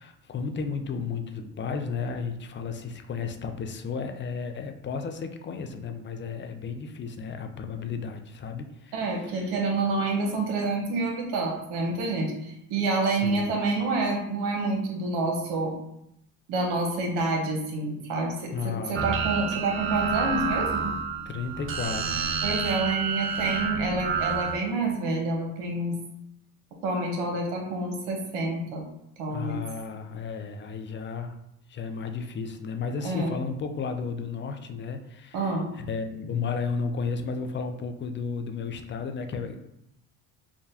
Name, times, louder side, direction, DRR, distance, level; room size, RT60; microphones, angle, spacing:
voice 1, 0.0-9.0 9.3-9.5 13.1-13.5 18.5-19.3 21.3-22.3 29.3-31.4 31.7-39.6, left 5 dB, 30° left, 6 dB, 0.4 m, -33 dB
voice 2, 8.9-15.8 16.5-21.0 22.4-26.0 26.8-28.8 29.2-29.6 33.0-33.4 35.3-35.7, right 2 dB, 75° right, 1 dB, 1.0 m, -28 dB
sound 1, 19.0-24.6, right 6 dB, 30° right, 0.5 m, -29 dB
4.8 x 2.2 x 2.8 m, 0.81 s
supercardioid pair, 80°, 41 cm